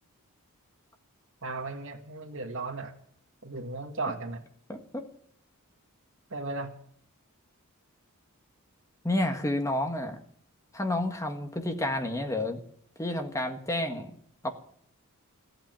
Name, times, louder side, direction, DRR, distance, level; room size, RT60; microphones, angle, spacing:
voice 1, 1.4-2.9 3.4-4.4 6.3-6.7, right 3 dB, 60° right, 6 dB, 1.9 m, -35 dB
voice 2, 4.7-5.0 9.0-10.2 10.7-12.6 13.0-14.1 14.4-14.5, left 1 dB, 15° left, 5 dB, 1.7 m, -30 dB
16.0 x 8.9 x 9.1 m, 0.62 s
head